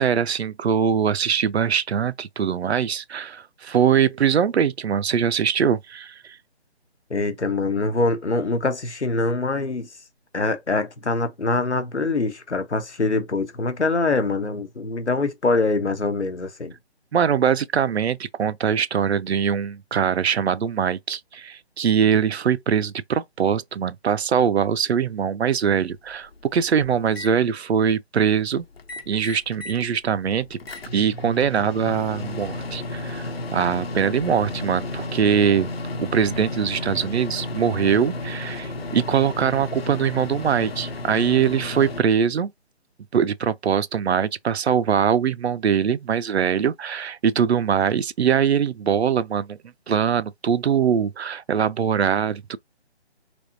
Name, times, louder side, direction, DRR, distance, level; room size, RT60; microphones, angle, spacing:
voice 1, 0.0-6.4 17.1-28.6 29.1-30.6 30.9-35.7 36.0-42.5 43.1-49.6 49.9-52.6, right 7 dB, 75° right, 0.5 m, -22 dB
voice 2, 7.1-9.9 10.3-16.7, left 3 dB, 90° left, 1.0 m, -24 dB
Microwave oven, 26.3-27.3 28.8-29.9 30.2-42.0, left 2 dB, 60° left, 1.0 m, -33 dB
3.4 x 2.8 x 2.6 m
figure-of-eight pair, 150°, 33 cm